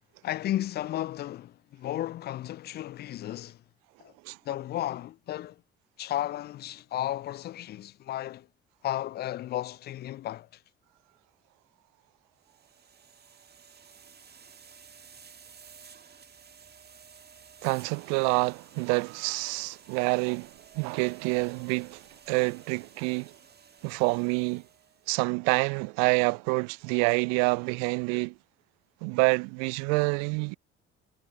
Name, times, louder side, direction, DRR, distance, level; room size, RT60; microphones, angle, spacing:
voice 1, 0.2-3.6 4.0-4.1 4.5-5.6 6.0-8.5 8.8-10.6, left 13 dB, 35° left, 0.4 m, -34 dB
sound 1, 12.4-25.1, right 6 dB, 35° right, 2.0 m, -54 dB
voice 2, 17.6-22.0 22.3-23.3 23.8-24.6 25.1-28.3 29.0-30.6, right 37 dB, 60° right, 0.5 m, -27 dB
figure-of-eight pair, 50°, 30 cm